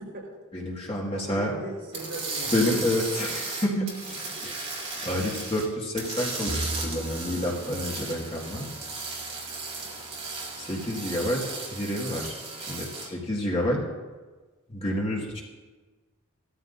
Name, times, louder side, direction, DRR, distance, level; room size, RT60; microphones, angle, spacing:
voice 1, 0.0-0.3 1.1-2.9 4.1-4.2 9.8-10.0, right 1 dB, 50° right, -3 dB, 4.4 m, -39 dB
voice 2, 0.5-1.5 2.5-4.5 5.0-8.7 10.6-11.4 11.7-12.4 12.7-13.8 14.7-15.4, left 1 dB, 25° left, -3 dB, 1.9 m, -29 dB
sound 1, 1.9-5.7 6.0-13.1, right 3 dB, 30° right, 2.6 m, -35 dB
Bowed string instrument, 6.5-10.0, right 1 dB, ahead, 0.6 m, -39 dB
16.5 x 13.5 x 2.6 m, 1.3 s
head